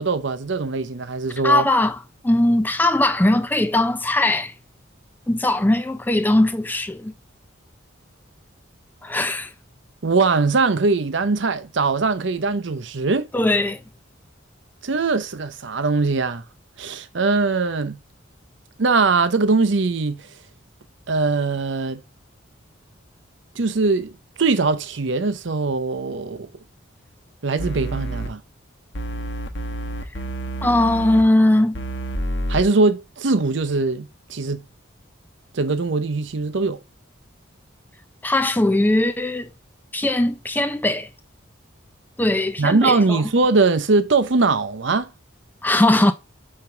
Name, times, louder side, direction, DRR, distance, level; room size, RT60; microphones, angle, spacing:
voice 1, 0.0-1.7 10.0-13.3 14.8-16.4 16.8-18.0 18.8-20.3 21.1-22.0 23.5-26.5 27.4-28.4 32.5-34.6 35.5-36.8 42.6-45.1, right 3 dB, 65° right, 0.7 m, -21 dB
voice 2, 1.4-2.0 2.2-4.5 5.3-7.1 9.0-9.5 13.3-13.8 30.6-31.8 38.2-39.5 39.9-41.1 42.2-43.2 45.6-46.1, left 1 dB, 10° left, 0.3 m, -19 dB
sound 1, 27.6-28.3 28.9-31.2 31.7-32.6, right 1 dB, 60° left, 1.1 m, -28 dB
5.5 x 4.4 x 5.8 m
head